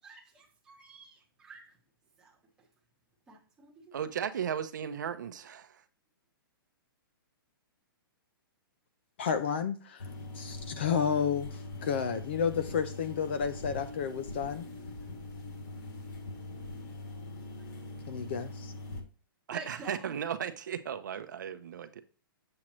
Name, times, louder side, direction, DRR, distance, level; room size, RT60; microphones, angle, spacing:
voice 1, 0.0-1.8 2.2-2.7 3.3-4.1 17.6-17.7 19.5-20.2, right 4 dB, 5° right, 1.1 m, -50 dB
voice 2, 3.9-5.8 19.5-22.0, right 8 dB, 50° right, 0.8 m, -36 dB
voice 3, 9.2-10.1 10.3-14.7 18.1-18.7, left 7 dB, 30° left, 0.5 m, -31 dB
sound 1, 10.0-19.0, left 2 dB, 50° left, 2.6 m, -42 dB
7.6 x 7.4 x 3.0 m
hypercardioid pair, 175°, 12 cm